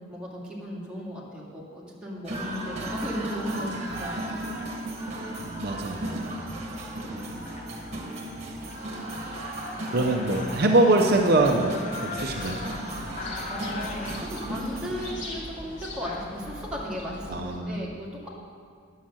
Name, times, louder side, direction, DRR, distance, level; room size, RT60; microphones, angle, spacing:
voice 1, 0.0-4.2 9.9-10.4 13.4-18.3, equal, 5° right, -6 dB, 2.1 m, -36 dB
sound 1, 2.2-15.1, right 1 dB, 35° right, 1.5 m, -36 dB
sound 2, 4.4-4.6 5.3-5.5 6.0-6.5 6.9-7.0 7.2-16.6, left 3 dB, 35° left, 0.9 m, -41 dB
voice 2, 5.6-6.3 7.1-7.3 8.4-8.6 9.3-9.4 9.9-12.6 17.3-17.8, right 2 dB, 55° right, 2 dB, 0.7 m, -24 dB
sound 3, 12.2-17.6, left 1 dB, 65° left, 1.6 m, -41 dB
10.0 x 6.4 x 7.5 m, 2.1 s
head